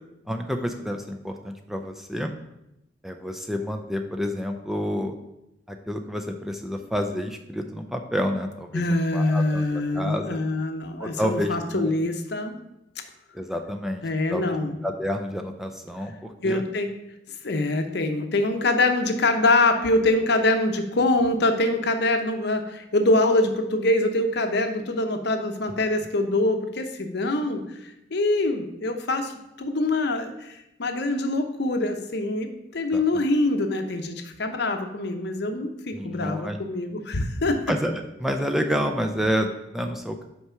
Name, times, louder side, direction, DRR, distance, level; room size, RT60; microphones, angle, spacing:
voice 1, 0.3-2.4 3.0-5.1 5.7-10.4 11.0-11.9 13.3-14.0 14.3-14.5 14.8-16.6 32.9-33.0 35.9-36.6 37.7-37.9 38.2-40.2, equal, ahead, 4 dB, 0.4 m, -29 dB
voice 2, 8.7-12.5 14.0-14.8 16.4-16.9 17.4-27.6 28.1-29.3 29.6-30.5 30.8-37.6, left 2 dB, 65° left, 6 dB, 0.8 m, -24 dB
5.7 x 4.7 x 5.7 m, 0.88 s
head